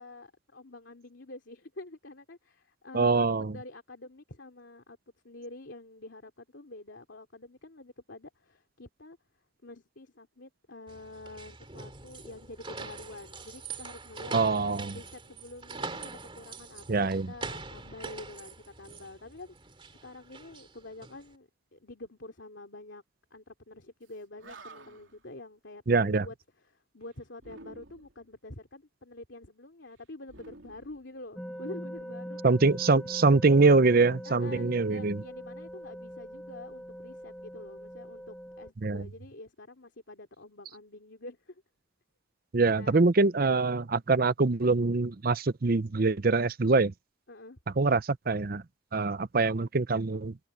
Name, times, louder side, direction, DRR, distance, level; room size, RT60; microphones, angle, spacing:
voice 1, 0.0-3.3 3.5-5.0 5.2-9.2 9.6-14.3 14.9-19.5 19.9-23.0 23.3-26.3 26.7-32.4 32.7-33.0 34.2-41.6 42.6-42.9 47.3-47.6, left 2 dB, 70° left, 2.9 m, -47 dB
voice 2, 2.9-3.6 14.3-15.0 16.9-17.3 25.9-26.3 32.4-35.2 38.8-39.0 42.5-46.9 47.8-48.6 48.9-50.4, right 3 dB, 50° right, 0.7 m, -24 dB
sound 1, 10.9-21.3, right 4 dB, 25° right, 3.3 m, -43 dB
Animal, 24.1-24.2 24.4-25.2 27.4-28.2 30.3-31.6, right 2 dB, 80° right, 3.4 m, -51 dB
sound 2, 31.4-38.7, equal, 5° left, 1.3 m, -42 dB
head